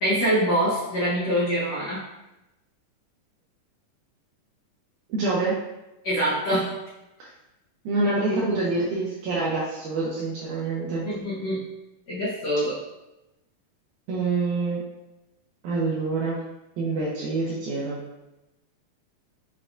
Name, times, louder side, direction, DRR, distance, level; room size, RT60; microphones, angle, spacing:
voice 1, 0.0-2.0 6.0-6.7 8.3-8.6 11.1-11.6 12.1-12.8, equal, 90° left, -8 dB, 1.4 m, -25 dB
voice 2, 5.1-5.5 7.9-11.0 14.1-14.8 15.6-16.4 16.8-18.0, right 3 dB, 85° right, -5 dB, 1.8 m, -26 dB
7.3 x 2.5 x 2.2 m, 0.96 s
omnidirectional pair, 4.2 m